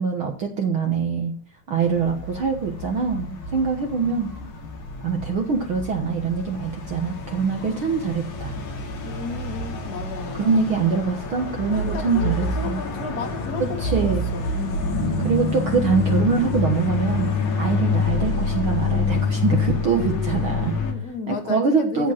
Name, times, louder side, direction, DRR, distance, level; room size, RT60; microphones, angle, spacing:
voice 1, 0.0-1.3 1.7-4.3 5.0-8.5 10.4-12.8 13.8-14.3 15.2-17.3 17.6-20.7 21.3-22.1, right 5 dB, 65° right, 4 dB, 1.3 m, -24 dB
sound 1, 1.8-20.9, left 3 dB, 55° left, 3.3 m, -27 dB
voice 2, 9.0-10.8 11.7-14.9 19.9-22.1, left 5 dB, 35° left, 5 dB, 1.7 m, -34 dB
15.0 x 5.1 x 7.5 m, 0.44 s
omnidirectional pair, 4.3 m